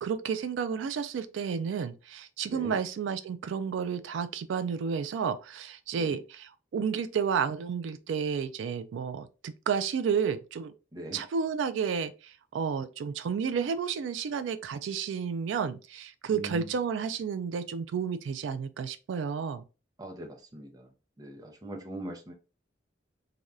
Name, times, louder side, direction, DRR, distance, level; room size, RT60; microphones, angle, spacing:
voice 1, 0.0-10.7 11.1-19.6, right 6 dB, 90° right, 0.3 m, -31 dB
voice 2, 2.5-2.8 5.9-6.2 10.9-11.2 16.3-16.7 20.0-20.9 21.2-22.3, right 1 dB, 20° right, 0.5 m, -41 dB
3.3 x 2.3 x 2.5 m
head